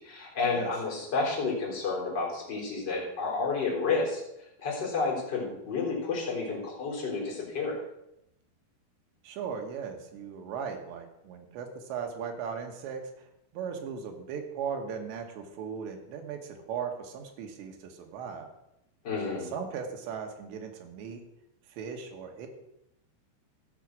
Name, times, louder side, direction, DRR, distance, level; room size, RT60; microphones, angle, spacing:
voice 1, 0.0-4.2 4.6-7.8 19.0-19.5, left 4 dB, 25° left, -4 dB, 3.8 m, -30 dB
voice 2, 9.2-13.0 13.5-18.5 19.5-21.2 21.7-22.5, right 6 dB, 85° right, 4 dB, 3.6 m, -37 dB
14.0 x 6.2 x 6.3 m, 0.83 s
omnidirectional pair, 5.0 m